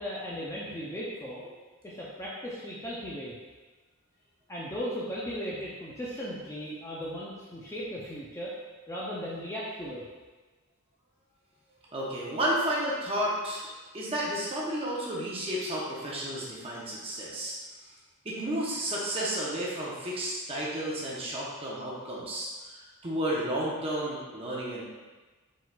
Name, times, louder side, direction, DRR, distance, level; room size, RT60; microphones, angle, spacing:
voice 1, 0.0-1.4 1.8-3.4 4.5-8.5 8.9-10.0, equal, 15° left, -6 dB, 0.4 m, -37 dB
voice 2, 11.9-13.7 13.9-17.6 18.2-24.8, right 1 dB, 25° right, -5 dB, 0.7 m, -32 dB
4.5 x 3.8 x 2.3 m, 1.3 s
head